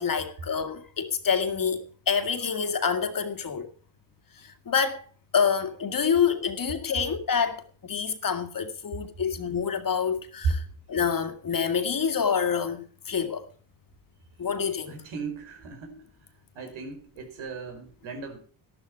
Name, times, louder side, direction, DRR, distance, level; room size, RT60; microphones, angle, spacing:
voice 1, 0.0-3.7 4.4-5.0 5.3-10.6 10.9-13.4 14.4-14.9, left 6 dB, 45° left, 2.1 m, -27 dB
voice 2, 14.9-16.0 16.5-18.4, right 5 dB, 80° right, 5.0 m, -34 dB
12.5 x 12.0 x 4.6 m
cardioid pair, 95°, 48 cm